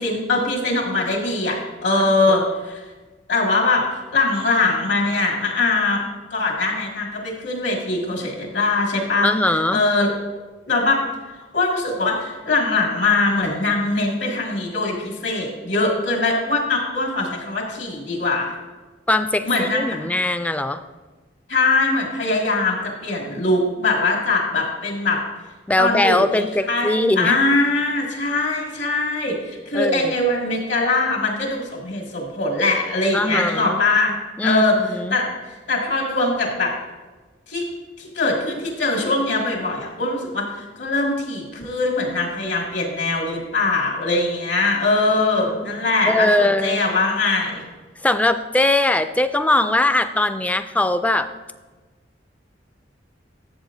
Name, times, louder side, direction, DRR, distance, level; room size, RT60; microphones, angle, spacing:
voice 1, 0.0-1.6 1.8-2.8 3.3-6.0 6.3-10.1 10.7-11.0 11.5-18.6 19.4-19.8 21.5-25.2 25.8-34.1 34.4-34.7 35.1-35.3 35.7-36.7 37.5-37.6 38.0-47.6, left 3 dB, 75° left, -1 dB, 2.2 m, -22 dB
voice 2, 9.2-9.8 19.1-20.8 25.7-27.4 29.7-30.1 33.1-33.8 34.4-35.2 46.1-46.8 48.0-51.3, left 1 dB, 10° left, 10 dB, 0.3 m, -20 dB
13.0 x 7.1 x 2.7 m, 1.3 s
head